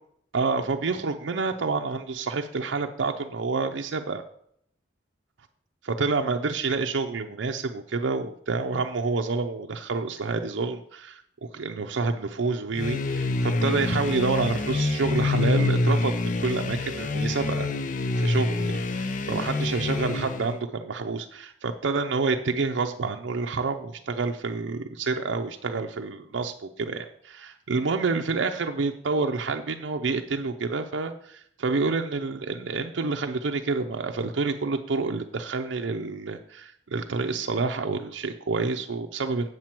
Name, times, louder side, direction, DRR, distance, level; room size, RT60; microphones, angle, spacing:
voice 1, 0.3-4.2 5.8-17.7 18.1-39.5, right 4 dB, 85° right, 4 dB, 0.6 m, -28 dB
sound 1, 12.8-20.6, left 2 dB, 45° left, 0.5 m, -26 dB
8.0 x 7.5 x 4.4 m, 0.68 s
head